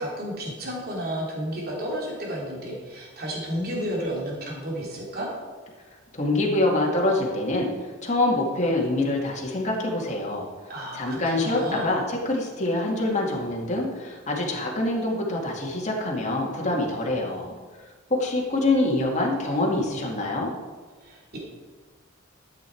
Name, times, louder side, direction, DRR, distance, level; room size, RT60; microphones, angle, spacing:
voice 1, 0.0-5.3 10.7-11.9 21.0-21.4, equal, 50° right, -4 dB, 3.0 m, -32 dB
voice 2, 6.1-7.7 8.0-10.5 10.9-17.5 18.1-20.5, left 2 dB, 35° left, -1 dB, 2.1 m, -25 dB
12.5 x 8.1 x 4.6 m, 1.4 s
head